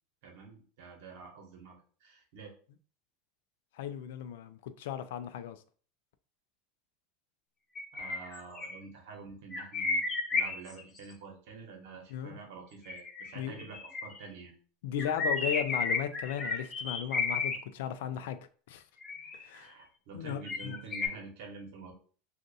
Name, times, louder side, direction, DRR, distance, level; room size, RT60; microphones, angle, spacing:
voice 1, 0.2-2.5 7.9-14.6 19.5-21.9, right 4 dB, 70° right, 1.0 m, -48 dB
voice 2, 3.8-5.6 12.1-12.4 13.4-13.7 14.8-18.4 18.7-18.8 19.3-19.7 20.1-20.8, left 9 dB, 80° left, 0.3 m, -36 dB
sound 1, 7.8-8.8 9.5-11.0 12.8-14.2 15.0-17.6 19.0-19.6 20.5-21.1, left 4 dB, 25° left, 0.7 m, -33 dB
2.6 x 2.5 x 3.9 m
supercardioid pair, 120°, 0 cm